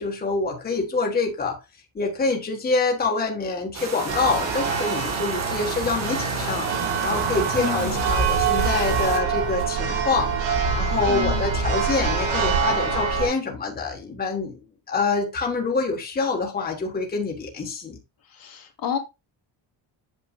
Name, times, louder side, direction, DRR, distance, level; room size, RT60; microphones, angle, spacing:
voice 1, 0.0-1.6 1.9-6.7 7.0-10.3 10.7-14.6 14.9-18.0, left 4 dB, 20° left, 1.4 m, -26 dB
sound 1, 3.7-9.2, right 4 dB, 35° right, 1.6 m, -34 dB
Church bell, 4.1-13.3, right 5 dB, 70° right, 2.9 m, -25 dB
voice 2, 7.6-8.0 11.1-11.6 18.3-19.0, left 7 dB, 45° left, 1.6 m, -30 dB
8.1 x 7.0 x 2.4 m
cardioid pair, 175°, 48 cm